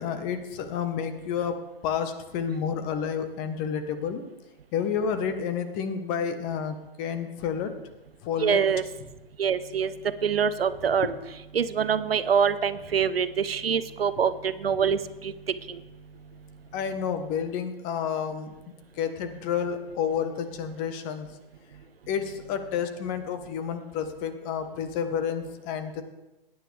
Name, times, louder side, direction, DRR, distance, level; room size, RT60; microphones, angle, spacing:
voice 1, 0.0-1.6 1.8-4.2 4.7-7.7 8.2-8.6 10.8-11.1 14.2-14.3 16.7-18.5 19.0-21.3 22.1-26.0, left 7 dB, 30° left, 9 dB, 1.2 m, -30 dB
voice 2, 8.4-8.8 9.4-11.1 11.5-15.8, right 7 dB, 80° right, 14 dB, 0.8 m, -25 dB
17.0 x 9.8 x 3.4 m, 1.0 s
hypercardioid pair, 125°, 29 cm